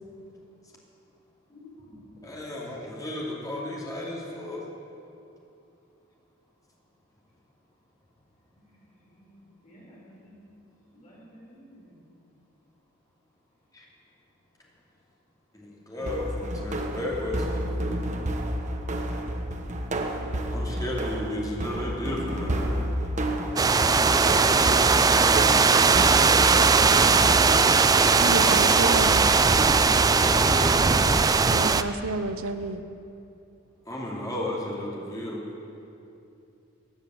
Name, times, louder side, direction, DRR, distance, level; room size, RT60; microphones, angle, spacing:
voice 1, 1.5-2.4 8.5-10.4 10.9-12.0, left 1 dB, 35° left, -5 dB, 4.6 m, -53 dB
voice 2, 2.2-4.6 12.1-12.2 13.7-13.9 15.5-18.1 20.5-22.8 30.1-30.7 33.8-35.4, left 1 dB, 15° left, -4 dB, 2.6 m, -34 dB
sound 1, 16.0-30.7, right 1 dB, 35° right, 1.1 m, -31 dB
sound 2, 23.6-31.8, right 4 dB, 20° right, 0.3 m, -19 dB
voice 3, 28.1-29.3 31.5-32.8, right 3 dB, 85° right, 10 dB, 0.8 m, -30 dB
16.0 x 9.2 x 7.7 m, 2.7 s
head